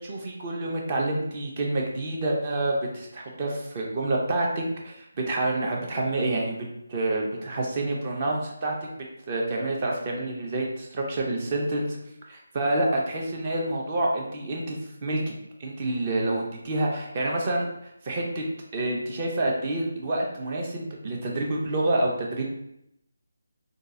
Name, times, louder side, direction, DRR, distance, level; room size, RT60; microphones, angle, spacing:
voice 1, 0.1-8.7 9.3-12.0 12.3-15.3 15.6-18.4 18.7-22.4, right 2 dB, 30° right, -1 dB, 0.7 m, -28 dB
3.7 x 2.3 x 2.6 m, 0.79 s
figure-of-eight pair, 160°, 0 cm